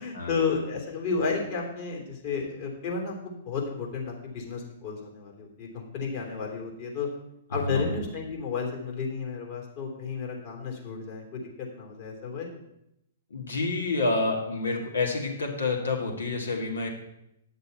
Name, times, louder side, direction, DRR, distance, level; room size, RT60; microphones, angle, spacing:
voice 1, 0.0-7.1 7.5-12.5, left 5 dB, 45° left, 0 dB, 3.1 m, -32 dB
voice 2, 13.3-16.9, left 3 dB, 80° left, 1 dB, 2.3 m, -28 dB
9.7 x 6.8 x 5.8 m, 0.81 s
hypercardioid pair, 120°, 0 cm